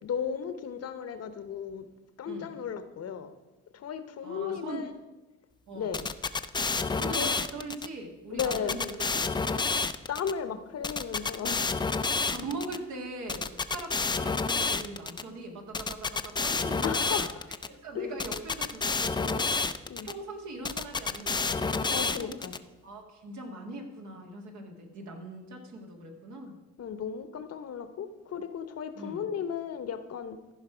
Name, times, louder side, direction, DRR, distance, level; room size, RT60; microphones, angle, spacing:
voice 1, 0.0-1.9 2.2-3.3 3.7-4.9 5.7-6.1 7.1-7.3 8.3-8.8 10.1-11.8 16.8-17.5 17.9-18.4 19.9-20.1 21.9-22.6 26.8-30.4, left 7 dB, 55° left, 0.8 m, -35 dB
voice 2, 4.2-4.9 5.7-6.0 6.9-9.7 12.3-17.3 17.7-19.5 20.0-22.3 22.8-26.5 29.0-29.2, right 2 dB, 70° right, 2.0 m, -41 dB
sound 1, 5.9-7.9 8.4-10.3 10.8-12.8 13.3-15.2 15.7-17.7 18.2-20.1 20.6-22.6, left 4 dB, 15° left, 0.4 m, -29 dB
14.5 x 5.3 x 5.0 m
cardioid pair, 90°, 30 cm